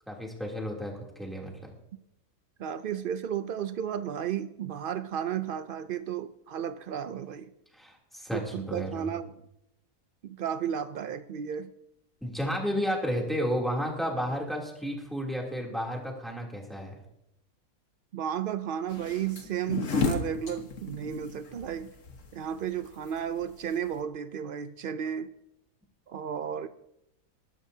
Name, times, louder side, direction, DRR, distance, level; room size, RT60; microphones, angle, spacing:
voice 1, 0.1-0.9 1.2-1.6 7.7-9.1 12.2-16.9, equal, ahead, -1 dB, 2.9 m, -32 dB
voice 2, 2.6-7.5 8.3-9.4 10.2-11.7 18.1-21.9 22.3-25.3 26.1-26.7, right 9 dB, 90° right, 12 dB, 0.4 m, -33 dB
sound 1, 18.9-24.0, left 4 dB, 60° left, 1.6 m, -33 dB
20.5 x 12.5 x 2.8 m, 0.82 s
omnidirectional pair, 1.6 m